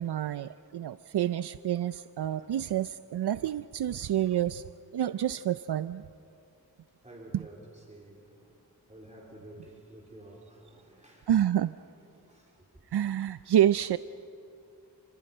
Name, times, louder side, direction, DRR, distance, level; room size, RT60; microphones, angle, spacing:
voice 1, 0.0-4.6 4.9-6.0 7.3-7.4 11.3-11.8 12.9-14.0, right 11 dB, 80° right, 0.6 m, -28 dB
voice 2, 2.3-2.6 7.0-8.5 8.9-11.3 12.1-12.5, right 1 dB, 20° right, 4.0 m, -51 dB
29.5 x 26.5 x 5.5 m
wide cardioid pair, 85°, 39 cm